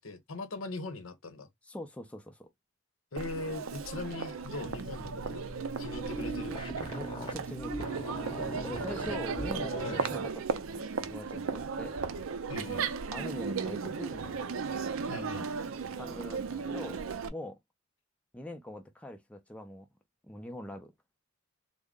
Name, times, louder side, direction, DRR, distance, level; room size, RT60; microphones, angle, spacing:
voice 1, 0.0-1.5 3.1-5.5 5.8-6.6 9.8-10.0 12.5-12.9 15.1-15.5, left 3 dB, 75° left, 0.9 m, -40 dB
voice 2, 1.6-2.5 6.9-7.9 8.6-12.0 13.1-14.4 15.9-17.0 17.3-17.6 18.3-19.9 20.3-20.9, left 1 dB, 5° left, 0.4 m, -43 dB
Crowd, 3.2-17.3, right 5 dB, 75° right, 0.5 m, -36 dB
sound 1, 4.5-10.2, right 1 dB, 25° left, 0.8 m, -40 dB
3.6 x 2.0 x 3.6 m
head